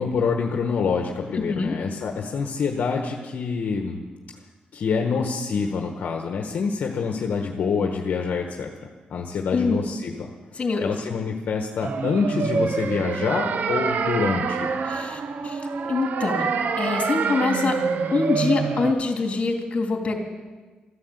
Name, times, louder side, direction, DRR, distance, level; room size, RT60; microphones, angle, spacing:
voice 1, 0.0-4.0 4.7-8.7 9.1-10.3 10.8-14.7, left 5 dB, 70° left, 2 dB, 1.2 m, -26 dB
voice 2, 1.3-1.7 9.5-9.8 10.6-10.8 14.9-16.4 16.8-17.8 18.1-20.2, left 4 dB, 40° left, 2 dB, 3.1 m, -25 dB
sound 1, 11.8-18.9, right 5 dB, 60° right, 0.8 m, -26 dB
13.5 x 11.5 x 8.0 m, 1.3 s
cardioid pair, 105°, 3 cm